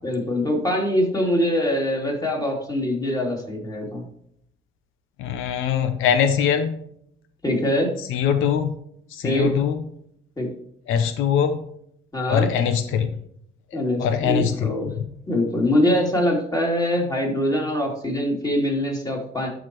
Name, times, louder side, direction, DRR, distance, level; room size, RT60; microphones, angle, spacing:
voice 1, 0.0-4.0 7.4-7.9 9.2-9.5 10.4-10.5 12.1-12.5 13.7-14.9 15.3-19.5, left 1 dB, 20° left, 0 dB, 2.9 m, -23 dB
voice 2, 5.2-6.8 8.1-8.8 9.1-9.8 10.9-11.6 12.3-13.1 14.0-15.1, left 8 dB, 90° left, 9 dB, 0.7 m, -22 dB
11.5 x 5.0 x 3.0 m, 0.70 s
cardioid pair, 90°, 20 cm